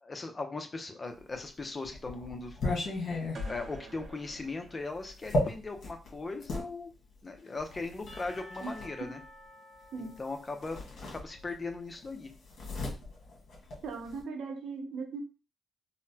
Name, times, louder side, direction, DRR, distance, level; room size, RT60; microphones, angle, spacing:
voice 1, 0.0-2.6 3.5-6.9 7.2-9.2 10.0-12.3, left 3 dB, 30° left, 0.6 m, -39 dB
sound 1, 1.3-6.7 7.6-8.9 10.1-10.3 10.6-11.7 12.0-14.2, left 2 dB, 65° left, 1.4 m, -35 dB
sound 2, 3.3-5.5, right 5 dB, 55° right, 0.8 m, -50 dB
Percussion / Church bell, 8.1-11.7, left 1 dB, 45° left, 1.0 m, -52 dB
voice 2, 13.8-15.2, right 4 dB, 85° right, 0.5 m, -38 dB
3.9 x 2.1 x 2.7 m
cardioid pair, 95°, 0 cm